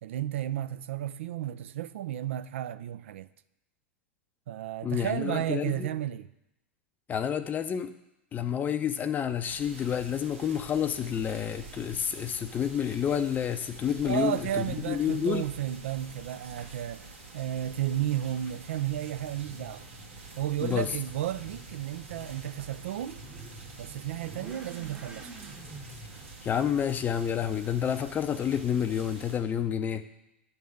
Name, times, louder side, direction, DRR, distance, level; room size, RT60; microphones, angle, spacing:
voice 1, 0.0-3.3 4.5-6.3 14.0-17.1 17.3-19.8 20.4-23.2 23.8-25.3, right 12 dB, 70° right, 0.4 m, -33 dB
voice 2, 4.8-5.9 7.1-7.9 8.3-15.4 20.6-20.9 26.4-30.1, left 8 dB, 25° left, 0.5 m, -29 dB
sound 1, 9.4-29.4, right 3 dB, 90° right, 1.8 m, -47 dB
Motorcycle / Accelerating revving vroom, 19.0-27.8, right 2 dB, 10° right, 0.9 m, -49 dB
9.3 x 3.5 x 6.4 m
hypercardioid pair, 105°, 7 cm